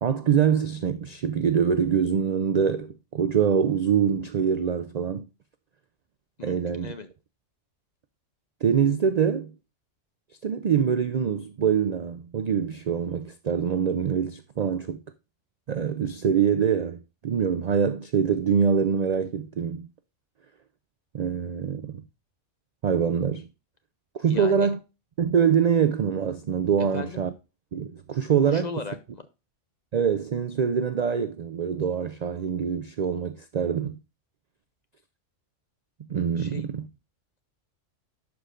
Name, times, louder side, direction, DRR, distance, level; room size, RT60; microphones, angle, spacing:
voice 1, 0.0-5.3 6.4-6.9 8.6-9.5 10.4-15.0 15.7-19.9 21.1-22.0 22.8-23.5 24.1-24.8 25.2-27.3 27.7-28.7 29.9-34.0 36.1-36.9, right 7 dB, 70° right, 0.3 m, -24 dB
voice 2, 6.4-7.1 24.3-24.7 26.9-27.2 28.4-29.2 36.4-36.6, left 4 dB, 45° left, 0.6 m, -36 dB
11.5 x 4.8 x 2.4 m
omnidirectional pair, 1.3 m